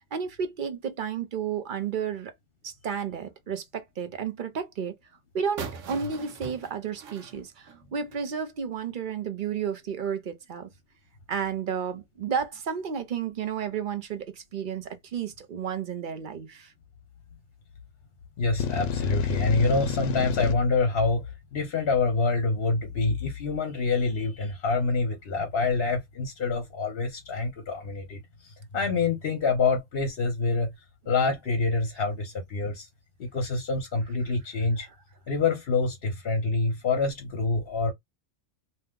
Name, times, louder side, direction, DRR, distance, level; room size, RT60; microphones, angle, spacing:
voice 1, 0.1-2.3 2.6-4.9 5.3-10.7 11.3-16.7, right 7 dB, 55° right, 0.6 m, -32 dB
sound 1, 5.6-8.3, right 5 dB, 85° right, 1.0 m, -40 dB
voice 2, 18.4-30.7 31.1-32.9 33.2-34.9 35.3-37.9, left 3 dB, 55° left, 1.0 m, -26 dB
sound 2, 18.6-20.5, left 7 dB, 80° left, 0.9 m, -30 dB
2.8 x 2.1 x 3.6 m
omnidirectional pair, 1.3 m